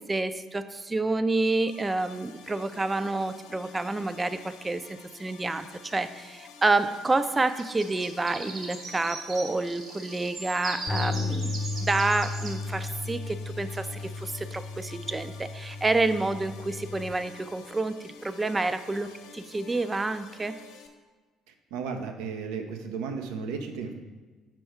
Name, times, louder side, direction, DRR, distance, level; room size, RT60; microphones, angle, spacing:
voice 1, 0.0-20.6, right 2 dB, 20° right, 12 dB, 0.5 m, -29 dB
sound 1, 1.7-20.9, left 6 dB, 75° left, 0.8 m, -50 dB
sound 2, 7.5-12.5, right 3 dB, 50° right, 1.6 m, -39 dB
sound 3, 10.9-17.1, left 3 dB, 50° left, 0.9 m, -34 dB
voice 2, 21.7-23.9, right 5 dB, 75° right, 6 dB, 0.7 m, -34 dB
5.4 x 4.5 x 5.8 m, 1.3 s
hypercardioid pair, 55°, 0 cm